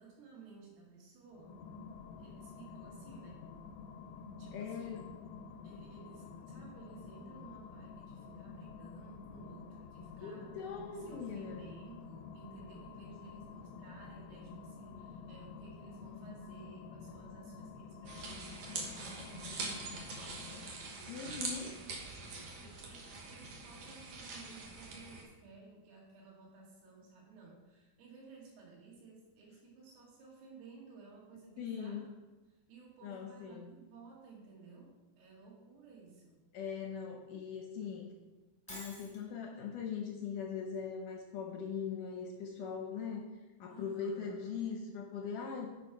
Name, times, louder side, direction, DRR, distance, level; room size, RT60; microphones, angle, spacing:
voice 1, 0.0-1.6 2.2-3.5 4.4-5.1 5.6-10.6 10.9-32.2 32.5-36.4 43.7-44.4, right 4 dB, 85° right, -3 dB, 4.1 m, -56 dB
sound 1, 1.3-21.0, left 5 dB, 90° left, 2.7 m, -50 dB
voice 2, 4.5-5.0 10.2-11.6 21.1-21.7 31.6-32.1 33.0-33.7 36.5-38.1 38.7-43.2 43.6-45.7, left 6 dB, 70° left, 1 dB, 2.1 m, -41 dB
sound 2, 18.1-25.2, right 3 dB, 60° right, 2.1 m, -44 dB
Shatter, 38.7-39.2, equal, 5° left, 0.6 m, -48 dB
10.5 x 5.4 x 4.7 m, 1.2 s
omnidirectional pair, 4.5 m